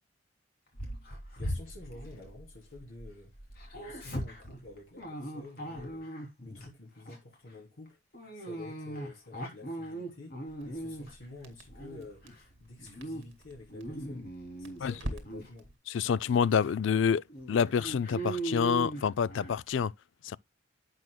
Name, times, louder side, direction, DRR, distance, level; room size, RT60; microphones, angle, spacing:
Dog, 0.7-3.1 3.3-6.7 7.1-7.3 8.1-11.2 11.7-12.4 12.8-13.2 13.6-14.8 15.2-15.5 16.1-16.2 16.6-16.7 17.3-19.6, right 1 dB, 45° left, 3.1 m, -39 dB
voice 1, 1.3-3.3 3.7-6.1 6.4-8.0 8.3-14.3 14.6-15.7, left 2 dB, 90° left, 3.4 m, -49 dB
Crackle, 10.5-15.8, right 1 dB, 65° right, 2.2 m, -46 dB
voice 2, 15.9-19.9 20.2-20.4, left 7 dB, 70° left, 0.4 m, -28 dB
11.0 x 8.0 x 2.2 m
head